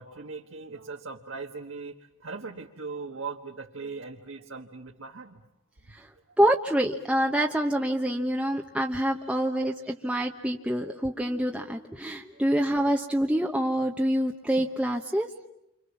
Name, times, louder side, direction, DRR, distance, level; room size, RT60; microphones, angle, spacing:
voice 1, 0.0-5.4 9.2-9.4 10.2-10.5, right 4 dB, 70° right, 1 dB, 1.5 m, -40 dB
voice 2, 6.4-15.3, right 1 dB, 5° right, 1 dB, 1.0 m, -26 dB
29.5 x 26.0 x 7.2 m, 0.84 s
head